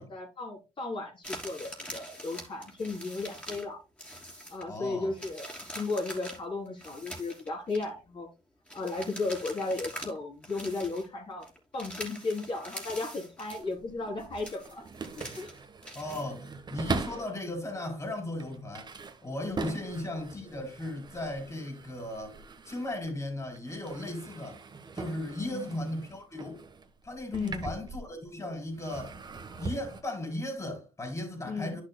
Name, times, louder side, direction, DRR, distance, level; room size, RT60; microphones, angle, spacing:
voice 1, 0.0-3.8 4.5-8.3 8.7-11.5 11.7-14.8 15.4-15.5 17.1-17.2 19.5-19.8 25.4-25.6 27.3-27.6 31.5-31.8, left 3 dB, 40° left, 3.6 m, -35 dB
sound 1, 1.2-3.7 4.0-4.8 5.1-7.9 8.7-10.2 10.4-11.1 11.4-13.7 14.1-16.3, equal, 10° left, 2.9 m, -44 dB
voice 2, 4.7-5.1 15.9-18.9 19.2-22.4 22.7-24.6 24.9-26.6 27.0-29.2 29.6-31.8, left 1 dB, 25° left, 4.5 m, -36 dB
sound 2, 13.5-17.4 18.0-23.2 23.5-28.4 28.7-30.0, right 4 dB, 35° right, 1.2 m, -41 dB
10.5 x 6.5 x 2.2 m
supercardioid pair, 75°, 13 cm